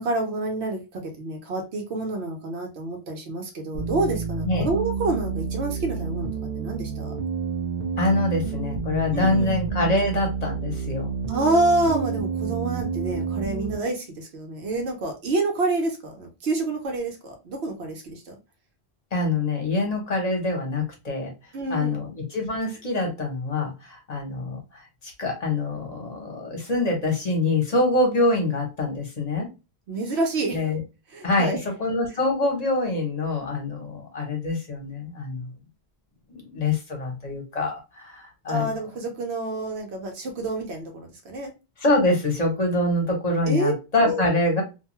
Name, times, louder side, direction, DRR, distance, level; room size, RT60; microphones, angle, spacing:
voice 1, 0.0-7.1 9.1-9.6 11.3-18.3 21.5-22.0 29.9-30.6 31.1-31.6 38.5-41.5 43.5-44.2, right 2 dB, 80° right, 3 dB, 1.1 m, -28 dB
sound 1, 3.7-13.7, right 5 dB, 50° right, 0.7 m, -29 dB
voice 2, 8.0-11.1 19.1-21.3 21.7-29.5 30.5-30.8 31.2-35.5 36.3-38.7 41.8-44.6, left 2 dB, 40° left, 1 dB, 0.9 m, -25 dB
2.6 x 2.3 x 2.8 m, 0.28 s
omnidirectional pair, 1.1 m